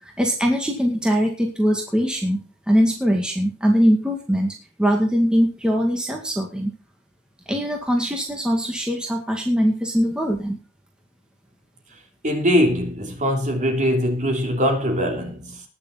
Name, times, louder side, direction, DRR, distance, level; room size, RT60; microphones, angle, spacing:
voice 1, 0.0-6.7 7.5-10.6, equal, 5° right, 2.1 m, -21 dB
voice 2, 12.2-15.6, equal, 35° right, 3.4 m, -22 dB
20.0 x 7.0 x 4.2 m
head